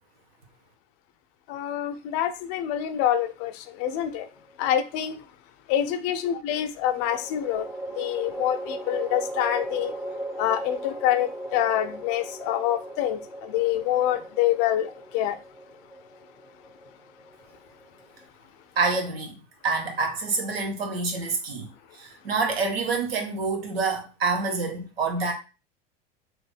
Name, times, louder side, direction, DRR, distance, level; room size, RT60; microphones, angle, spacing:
voice 1, 1.5-4.3 4.6-5.3 5.7-7.7 7.9-9.9 10.4-15.4, left 11 dB, 55° left, 0.6 m, -26 dB
sound 1, 3.9-4.7 6.9-18.3, right 1 dB, 5° right, 0.6 m, -38 dB
voice 2, 18.8-25.3, right 4 dB, 85° right, 1.1 m, -27 dB
3.1 x 2.6 x 3.4 m
hypercardioid pair, 90°, 29 cm